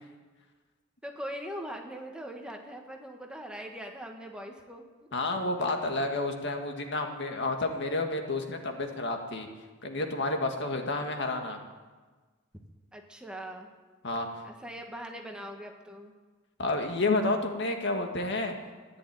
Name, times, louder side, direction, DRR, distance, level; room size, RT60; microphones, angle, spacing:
voice 1, 1.0-4.9 5.3-5.4 10.6-10.9 12.9-13.7 14.4-16.1, equal, 5° right, 2 dB, 1.6 m, -41 dB
voice 2, 5.1-9.5 9.8-11.6 14.0-14.3 16.6-18.5, left 2 dB, 60° left, 4 dB, 1.8 m, -30 dB
14.5 x 11.0 x 9.1 m, 1.3 s
head